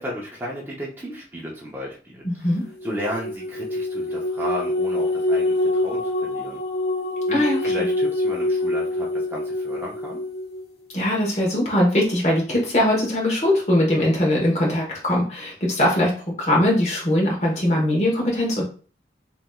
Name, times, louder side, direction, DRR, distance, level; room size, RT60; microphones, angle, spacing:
voice 1, 0.0-2.5 2.8-6.6 7.3-10.2, equal, 10° right, -4 dB, 0.5 m, -34 dB
voice 2, 2.2-2.6 7.3-7.9 10.9-16.1 16.4-18.6, left 1 dB, 40° left, -2 dB, 1.0 m, -21 dB
sound 1, 2.8-10.6, left 1 dB, 65° left, 0.7 m, -25 dB
3.4 x 2.8 x 2.2 m, 0.40 s
head